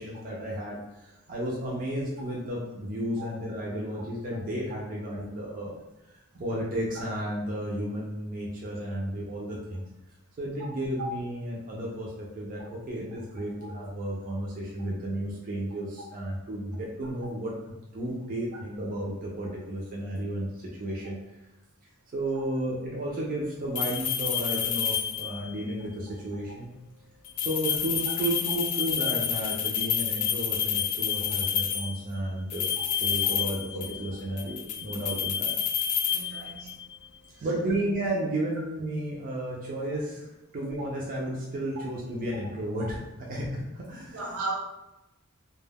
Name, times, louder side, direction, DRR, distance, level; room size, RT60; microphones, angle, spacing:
voice 1, 0.0-5.8 6.4-9.8 10.4-21.2 22.1-26.7 27.4-32.7 33.0-35.5 37.4-44.4, right 1 dB, 40° right, -4 dB, 0.4 m, -33 dB
sound 1, 23.7-25.5 27.2-32.0 32.5-34.1 34.4-36.8, left 8 dB, 80° left, 0.3 m, -29 dB
voice 2, 36.1-36.7 37.4-37.5 44.1-44.5, right 3 dB, 75° right, -2 dB, 0.7 m, -36 dB
2.2 x 2.1 x 3.3 m, 0.94 s
head